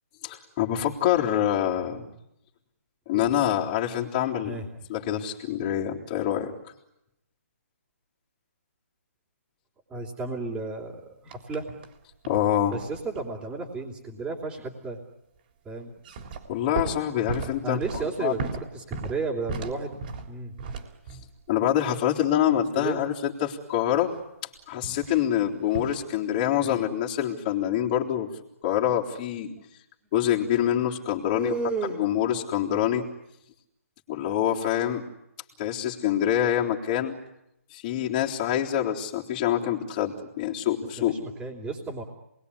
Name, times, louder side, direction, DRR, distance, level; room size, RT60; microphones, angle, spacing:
voice 1, 0.2-2.1 3.1-4.5 4.9-6.5 12.3-12.8 16.5-18.3 21.5-24.1 24.7-28.3 28.6-29.5 30.1-31.5 32.0-33.1 34.1-35.1 35.6-37.1 37.7-41.2, left 11 dB, 30° left, -2 dB, 3.7 m, -26 dB
voice 2, 3.1-3.4 4.4-4.7 9.9-11.7 12.7-15.0 15.6-15.9 17.6-19.9 20.3-20.5 22.8-23.0 26.6-26.8 31.3-32.0 41.1-42.0, right 4 dB, 10° right, -5 dB, 3.4 m, -33 dB
sound 1, 11.3-12.0 12.2-13.4 15.9-21.4 24.8-25.2 25.7-26.1, right 4 dB, 35° right, 3.6 m, -36 dB
28.0 x 21.5 x 9.9 m, 0.83 s
hypercardioid pair, 150°, 8 cm